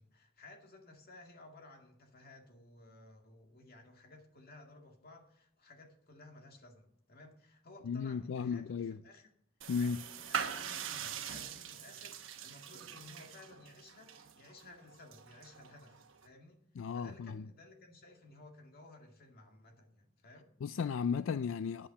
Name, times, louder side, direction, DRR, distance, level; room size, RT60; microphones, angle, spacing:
voice 1, 0.0-9.3 9.7-16.6 16.9-20.5, left 2 dB, 50° left, 2.1 m, -57 dB
voice 2, 7.8-9.0 9.7-10.0 16.8-17.4 20.6-21.9, left 6 dB, 80° left, 0.4 m, -35 dB
sound 1, 9.6-16.3, right 7 dB, 90° right, 1.1 m, -43 dB
9.9 x 8.6 x 6.6 m
head